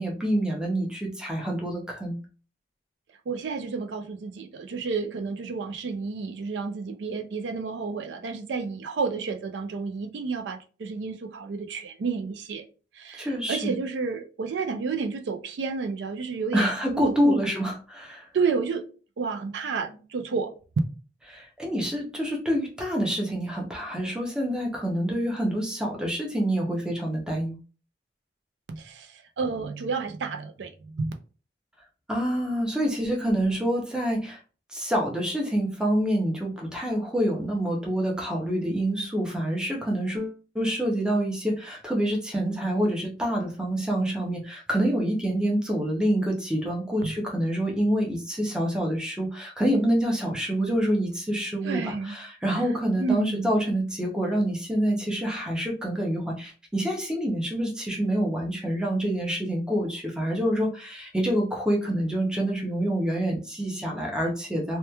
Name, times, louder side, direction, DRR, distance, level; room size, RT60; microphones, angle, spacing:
voice 1, 0.0-2.2 13.2-13.7 16.5-18.2 21.3-27.6 32.1-34.4 34.7-64.8, equal, 5° right, 0.5 m, -27 dB
voice 2, 3.3-12.6 12.9-17.4 18.3-18.8 19.2-20.5 28.7-31.1 47.0-47.1 51.6-52.2 53.0-53.5, right 4 dB, 85° right, 0.4 m, -31 dB
2.9 x 2.2 x 2.2 m
head